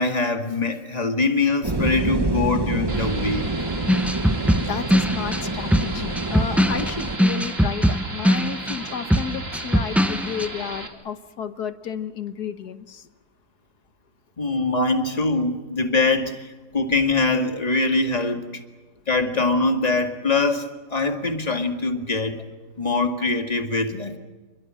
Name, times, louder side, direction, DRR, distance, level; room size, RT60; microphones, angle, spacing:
voice 1, 0.0-3.5 14.4-18.5 19.1-22.4 22.8-24.2, left 3 dB, 25° left, 5 dB, 2.2 m, -23 dB
sound 1, 1.6-7.2, right 2 dB, 15° right, 1.0 m, -27 dB
sound 2, 2.9-10.9, right 2 dB, 35° right, 2.8 m, -35 dB
sound 3, 3.9-10.5, equal, ahead, 0.6 m, -21 dB
voice 2, 4.6-13.1, left 7 dB, 75° left, 10 dB, 1.7 m, -32 dB
29.0 x 22.0 x 7.7 m, 1.3 s
omnidirectional pair, 1.7 m